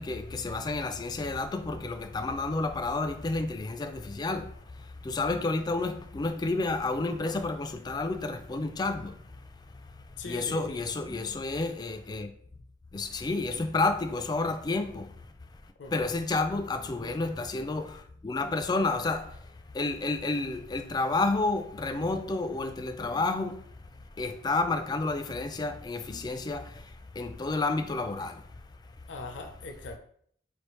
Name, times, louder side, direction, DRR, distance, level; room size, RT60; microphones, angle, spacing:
voice 1, 0.0-4.5 4.8-9.2 10.2-12.3 12.9-15.1 15.9-19.4 19.7-23.6 24.2-28.4, left 3 dB, 25° left, 0.3 m, -30 dB
voice 2, 10.2-10.8 15.8-16.1 29.1-30.0, left 3 dB, 75° left, 0.5 m, -40 dB
4.5 x 3.3 x 3.0 m
head